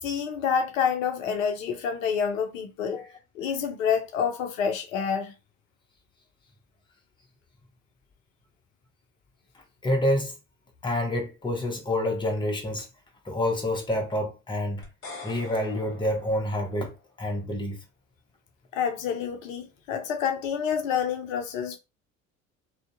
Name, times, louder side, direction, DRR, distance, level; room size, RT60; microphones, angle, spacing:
voice 1, 0.0-3.0 3.4-5.3 18.7-21.8, left 7 dB, 75° left, 0.5 m, -28 dB
voice 2, 9.8-10.3 10.8-12.9 13.2-14.8 15.2-17.8, left 1 dB, 10° left, 0.9 m, -28 dB
sound 1, 14.8-17.1, left 3 dB, 35° left, 1.3 m, -44 dB
2.6 x 2.1 x 2.3 m
figure-of-eight pair, 60°, 40 cm